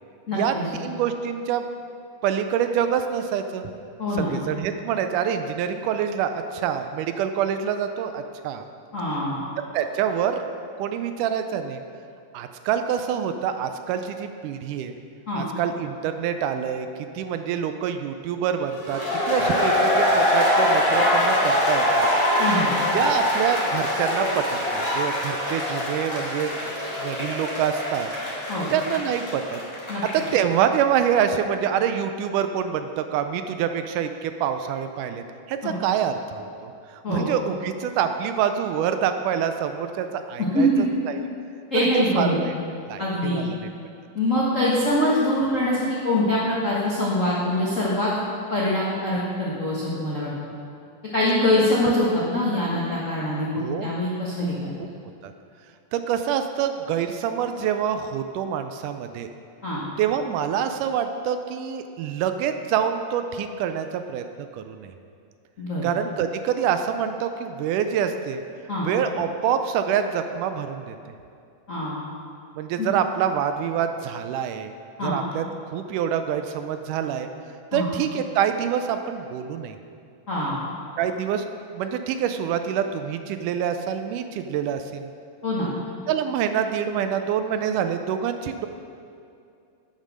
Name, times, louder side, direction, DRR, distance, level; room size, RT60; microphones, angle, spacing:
voice 1, 0.3-0.7 4.0-4.3 8.9-9.4 15.3-15.4 22.4-22.7 28.5-28.7 29.9-30.0 35.6-35.8 37.0-37.3 40.5-40.8 41.7-42.4 43.0-43.4 44.1-48.1 48.5-50.6 51.1-54.8 59.6-59.8 65.6-65.8 68.7-68.9 71.7-72.0 72.8-72.9 75.0-75.2 77.7-77.9 80.3-80.6 85.4-85.7, left 1 dB, 85° left, -7 dB, 0.7 m, -24 dB
voice 2, 0.8-1.7 2.2-3.7 4.1-8.7 9.7-10.4 10.8-11.8 12.3-14.9 15.3-16.9 17.2-22.1 22.9-26.5 27.0-28.1 28.7-29.6 30.1-40.7 41.1-41.2 41.7-42.5 42.9-43.7 53.6-53.9 54.8-54.9 55.2-55.3 55.9-59.3 60.0-64.2 64.5-64.9 65.8-68.4 68.8-71.0 72.6-74.7 75.0-77.3 77.7-79.8 81.0-81.4 81.7-85.1 86.1-88.7, right 8 dB, 80° right, 8 dB, 2.0 m, -26 dB
sound 1, 18.8-30.4, left 1 dB, 15° left, 1.7 m, -23 dB
8.9 x 7.4 x 6.3 m, 2.4 s
omnidirectional pair, 3.8 m